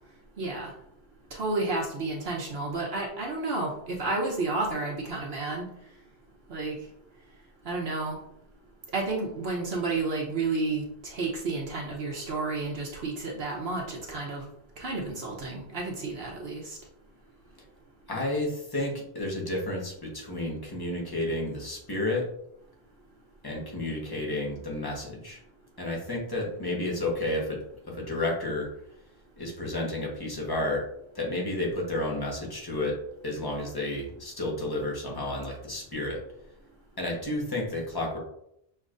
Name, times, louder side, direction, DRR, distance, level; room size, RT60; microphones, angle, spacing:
voice 1, 0.4-0.7 1.3-5.7 6.5-6.8 7.6-8.2 8.9-14.5 14.8-16.8, right 3 dB, 70° right, -2 dB, 1.1 m, -31 dB
voice 2, 18.1-22.3 23.4-25.4 25.8-27.6 27.9-28.7 29.4-30.9 31.1-33.0 33.2-36.2 37.0-38.2, left 1 dB, 20° left, -2 dB, 1.1 m, -31 dB
6.5 x 3.1 x 2.5 m, 0.75 s
omnidirectional pair, 1.1 m